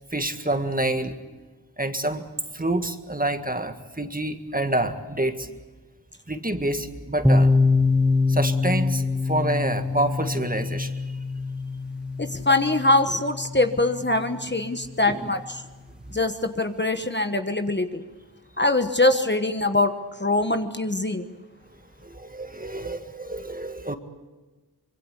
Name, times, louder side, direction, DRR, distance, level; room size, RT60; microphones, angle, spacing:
voice 1, 0.1-1.1 1.8-2.3 2.5-5.6 6.3-7.5 8.3-11.0 15.1-15.3 22.0-23.9, right 1 dB, 20° right, 7 dB, 1.8 m, -27 dB
sound 1, 7.2-14.9, left 3 dB, ahead, 1.3 m, -24 dB
voice 2, 12.2-15.6 16.1-18.0 18.6-19.9 20.2-21.2, left 2 dB, 25° left, 7 dB, 1.3 m, -23 dB
25.0 x 22.5 x 8.2 m, 1.2 s
wide cardioid pair, 65°, 41 cm